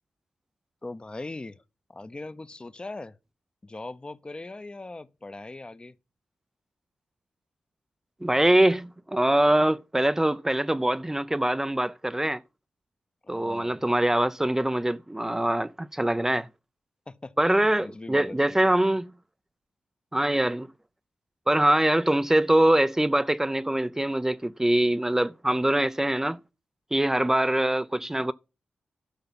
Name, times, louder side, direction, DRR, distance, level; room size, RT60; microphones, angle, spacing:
voice 1, 0.8-1.6 1.9-3.2 3.6-5.9 13.2-13.8 17.1-18.8, left 2 dB, 30° left, 0.8 m, -40 dB
voice 2, 8.2-12.4 13.3-16.5 17.4-19.1 20.1-20.7 21.5-26.4 26.9-28.3, right 1 dB, 15° right, 0.5 m, -23 dB
12.0 x 5.7 x 5.6 m
cardioid pair, 50°, 3 cm